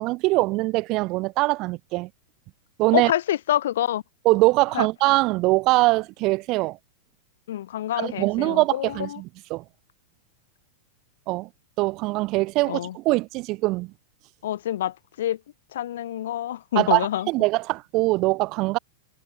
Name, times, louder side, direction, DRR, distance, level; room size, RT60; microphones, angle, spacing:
voice 1, 0.0-2.1 2.8-3.1 4.2-6.8 8.0-9.6 11.3-11.5 11.8-13.9 16.8-18.8, right 21 dB, 40° right, 0.8 m, -22 dB
voice 2, 2.9-4.0 4.7-4.9 7.5-9.2 12.7-13.0 14.4-15.4 15.7-17.3, left 12 dB, 75° left, 2.6 m, -27 dB
hypercardioid pair, 135°, 0 cm